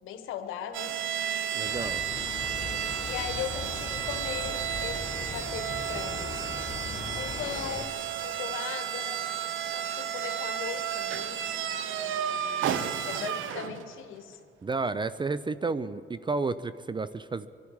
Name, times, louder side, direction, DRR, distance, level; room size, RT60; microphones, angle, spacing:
voice 1, 0.0-1.0 3.0-6.4 7.2-9.3 9.7-11.4 13.0-14.4, left 9 dB, 90° left, 8 dB, 1.3 m, -38 dB
sound 1, 0.7-14.0, right 9 dB, 80° right, 0.9 m, -32 dB
voice 2, 1.5-2.0 14.6-17.5, right 3 dB, 25° right, 15 dB, 0.5 m, -31 dB
sound 2, 1.6-7.9, left 3 dB, 30° left, 1.3 m, -39 dB
25.0 x 12.0 x 4.8 m, 2.3 s
cardioid pair, 90°, 20 cm